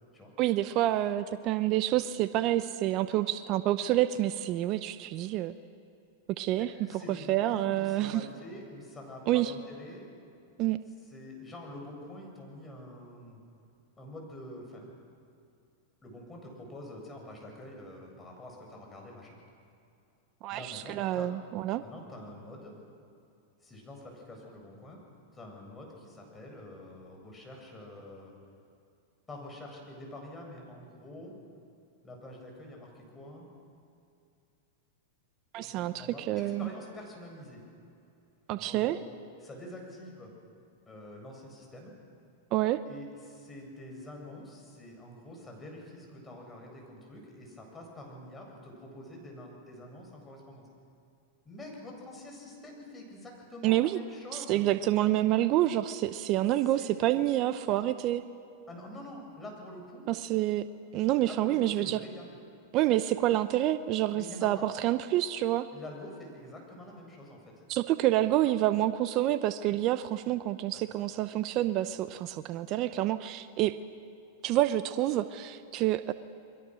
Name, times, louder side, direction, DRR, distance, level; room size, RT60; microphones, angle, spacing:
voice 1, 0.4-5.5 6.4-6.7 7.3-8.3 9.3-9.5 10.6-10.8 20.4-21.8 35.5-36.7 38.5-39.0 42.5-42.8 53.6-54.0 54.3-58.2 60.1-60.6 60.9-62.0 62.7-65.7 67.7-73.7 74.4-76.1, right 14 dB, 45° right, 11 dB, 0.8 m, -28 dB
voice 2, 6.6-10.1 10.4-10.6 11.1-13.4 14.0-14.9 16.0-19.4 20.5-21.3 21.8-22.7 23.6-25.0 25.3-28.3 29.3-31.3 32.0-33.5 35.6-37.6 38.5-39.0 39.4-40.3 40.9-41.9 42.9-50.7 51.4-54.6 56.6-57.9 58.7-60.1 61.3-62.3 64.1-64.6 65.7-67.5 70.9-71.0, left 1 dB, 15° left, 0 dB, 7.5 m, -46 dB
29.5 x 22.0 x 6.4 m, 2.5 s
hypercardioid pair, 120°, 0 cm